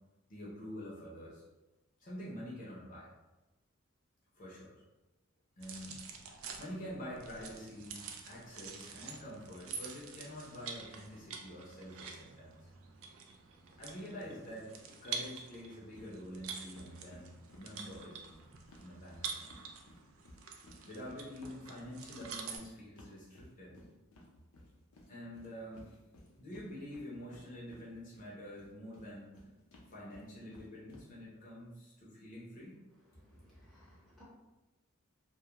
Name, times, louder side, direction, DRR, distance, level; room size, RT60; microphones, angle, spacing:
voice 1, 0.3-1.4 2.0-3.1 4.4-4.8 5.6-6.0 6.6-12.7 13.8-18.2 18.8-19.5 20.9-23.8 25.1-25.9 26.4-29.6 29.9-32.8, equal, 40° left, -6 dB, 0.6 m, -47 dB
sound 1, 5.6-22.6, right 5 dB, 70° right, 0.3 m, -47 dB
sound 2, 15.9-16.1 16.3-16.5 16.7-19.6 19.9-28.3 28.5-31.0, left 1 dB, 85° left, 0.6 m, -57 dB
voice 2, 33.2-34.2, equal, ahead, -9 dB, 0.7 m, -59 dB
2.2 x 2.2 x 2.9 m, 1.1 s
head